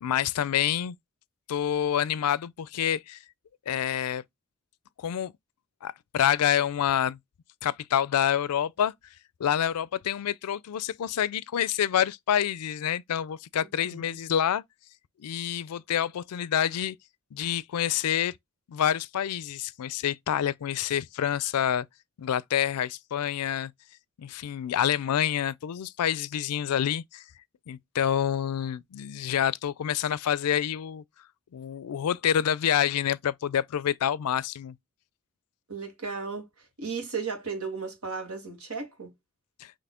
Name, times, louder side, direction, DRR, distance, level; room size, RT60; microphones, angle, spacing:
voice 1, 0.0-1.0 1.5-3.2 3.7-4.2 5.0-5.3 5.8-7.2 7.6-8.9 9.4-14.6 15.2-17.0 17.3-18.3 18.7-21.9 22.2-23.7 24.2-27.2 27.7-31.0 31.5-34.8 39.6-39.7, left 9 dB, 90° left, 0.4 m, -27 dB
voice 2, 13.8-14.2 35.7-36.5 36.8-39.1, right 5 dB, 75° right, 1.7 m, -35 dB
4.1 x 3.1 x 4.2 m
head